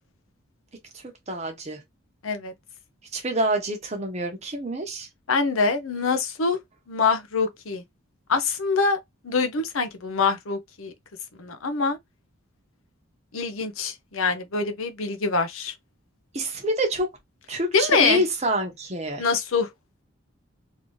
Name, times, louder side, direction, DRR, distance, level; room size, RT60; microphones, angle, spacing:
voice 1, 0.9-1.8 3.1-5.1 16.3-17.1 17.5-19.3, right 1 dB, 30° right, 0.9 m, -27 dB
voice 2, 5.3-6.6 6.9-7.8 8.3-9.0 9.2-10.9 11.4-12.0 13.3-15.7 17.7-18.2 19.2-19.7, left 4 dB, 75° left, 0.7 m, -24 dB
3.0 x 2.8 x 3.1 m
head